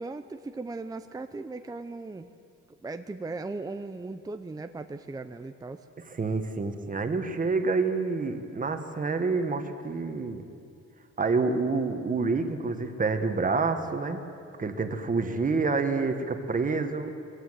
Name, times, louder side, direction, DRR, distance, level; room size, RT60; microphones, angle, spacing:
voice 1, 0.0-2.3 2.8-5.9, right 3 dB, 15° right, 8 dB, 0.6 m, -38 dB
voice 2, 6.2-10.4 11.2-14.2 14.6-17.1, right 4 dB, 30° right, 7 dB, 1.5 m, -28 dB
22.0 x 16.5 x 8.1 m, 2.5 s
cardioid pair, 125°, 29 cm